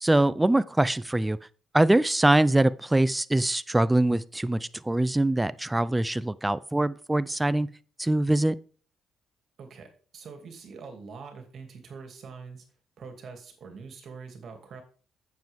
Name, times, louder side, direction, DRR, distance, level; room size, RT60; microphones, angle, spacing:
voice 1, 0.0-1.4 1.7-7.7 8.0-8.5, right 1 dB, 10° right, 0.4 m, -23 dB
voice 2, 9.6-12.6 13.0-14.8, right 5 dB, 60° right, 2.4 m, -44 dB
9.0 x 7.5 x 3.5 m
cardioid pair, 90°, 0 cm